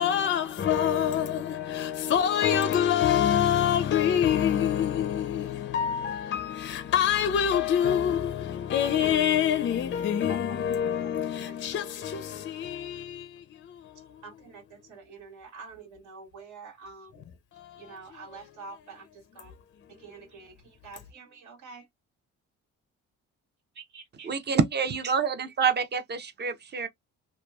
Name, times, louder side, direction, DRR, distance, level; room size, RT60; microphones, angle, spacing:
voice 1, 0.0-13.8 17.6-18.0, left 9 dB, 40° left, 0.4 m, -26 dB
voice 2, 10.3-10.6 11.4-11.9 14.2-17.1 17.8-19.5 20.0-21.9 23.8-24.3, right 4 dB, 70° right, 1.7 m, -47 dB
voice 3, 24.2-26.9, right 6 dB, 35° right, 0.7 m, -27 dB
2.9 x 2.2 x 2.3 m
cardioid pair, 90°, 30 cm